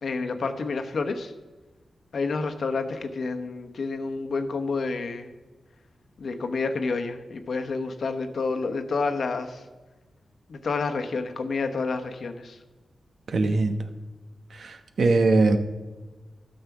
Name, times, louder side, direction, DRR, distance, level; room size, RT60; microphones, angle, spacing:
voice 1, 0.0-1.3 2.1-5.3 6.2-9.6 10.5-12.6, left 4 dB, 65° left, 7 dB, 1.0 m, -29 dB
voice 2, 13.3-13.8 14.5-15.6, right 3 dB, 65° right, 7 dB, 1.0 m, -21 dB
12.5 x 6.5 x 6.0 m, 1.2 s
wide cardioid pair, 85°, 0 cm